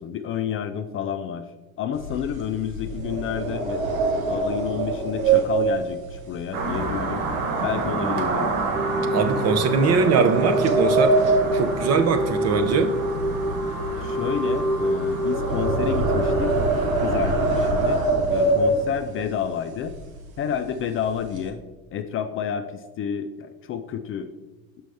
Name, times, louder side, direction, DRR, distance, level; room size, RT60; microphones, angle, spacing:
voice 1, 0.0-1.5 1.8-3.8 4.3-7.3 7.6-8.5 14.0-16.6 17.0-18.0 18.3-19.9 20.4-21.6 21.9-24.3, left 8 dB, 35° left, 8 dB, 0.4 m, -30 dB
sound 1, 1.9-7.3 7.6-7.9 8.4-8.6 9.4-12.7 13.0-19.2 19.8-19.9 20.2-20.5 20.8-21.5, right 3 dB, 90° right, 1.0 m, -24 dB
sound 2, 6.5-17.7, right 3 dB, 65° right, 1.3 m, -30 dB
sound 3, 8.7-16.5, equal, 5° left, 0.8 m, -27 dB
voice 2, 9.1-11.2 11.5-12.9, right 5 dB, 40° right, 9 dB, 0.7 m, -21 dB
6.1 x 5.3 x 3.4 m, 1.2 s
hypercardioid pair, 80°, 40 cm